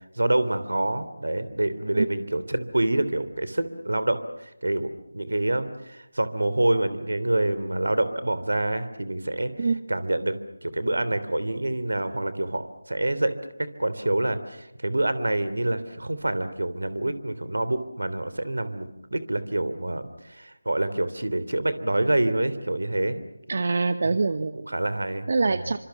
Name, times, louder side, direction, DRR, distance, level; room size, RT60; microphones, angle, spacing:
voice 1, 0.2-9.5 9.9-13.4 13.8-23.2 24.0-24.1 24.7-25.7, right 1 dB, 75° right, 13 dB, 3.1 m, -27 dB
voice 2, 23.5-24.7 25.3-25.8, right 4 dB, 50° right, 11 dB, 1.1 m, -24 dB
28.5 x 26.0 x 7.1 m, 0.87 s
figure-of-eight pair, 160°, 0 cm